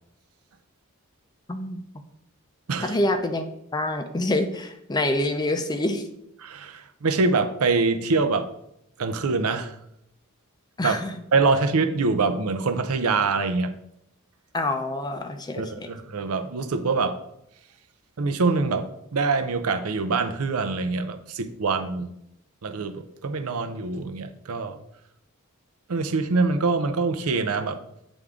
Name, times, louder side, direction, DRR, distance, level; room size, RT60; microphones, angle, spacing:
voice 1, 1.5-1.8 2.8-3.4 3.7-6.0 10.8-11.1 14.5-15.9, left 1 dB, 20° left, 6 dB, 0.5 m, -26 dB
voice 2, 6.4-8.5 9.0-9.8 10.8-11.0 11.3-13.7 15.6-17.2 18.2-22.2 22.6-24.8 25.9-27.8, right 4 dB, 85° right, 9 dB, 0.6 m, -24 dB
8.0 x 3.6 x 3.6 m, 0.79 s
head